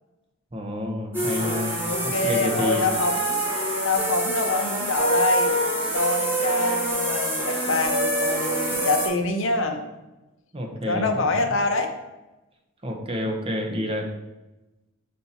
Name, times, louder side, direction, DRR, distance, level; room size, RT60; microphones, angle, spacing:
voice 1, 0.5-1.8 2.0-2.9 10.5-11.1 12.8-14.1, equal, 25° right, 2 dB, 0.8 m, -29 dB
sound 1, 1.1-9.1, right 1 dB, 10° right, 1.8 m, -26 dB
voice 2, 1.9-3.4 3.8-9.8 10.9-11.9, left 3 dB, 60° left, 5 dB, 0.7 m, -25 dB
5.5 x 4.2 x 4.2 m, 1.0 s
head